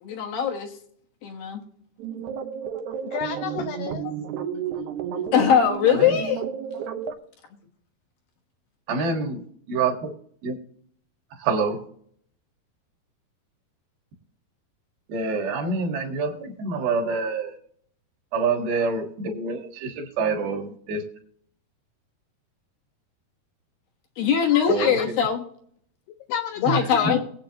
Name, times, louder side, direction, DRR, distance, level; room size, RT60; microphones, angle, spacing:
voice 1, 0.0-0.8 1.2-1.6 5.3-6.4 24.2-25.4 26.6-27.2, left 8 dB, 65° left, 2 dB, 2.8 m, -21 dB
sound 1, 2.0-7.1, right 8 dB, 90° right, 1.7 m, -32 dB
voice 2, 3.1-4.2 24.5-25.1 26.3-27.2, left 9 dB, 85° left, 9 dB, 2.0 m, -30 dB
voice 3, 8.9-10.1 10.4-10.6 11.3-11.9 15.1-17.6 18.3-21.1 24.7-25.2 26.7-27.2, right 4 dB, 65° right, 3 dB, 3.3 m, -27 dB
21.0 x 8.3 x 2.9 m, 0.62 s
omnidirectional pair, 4.7 m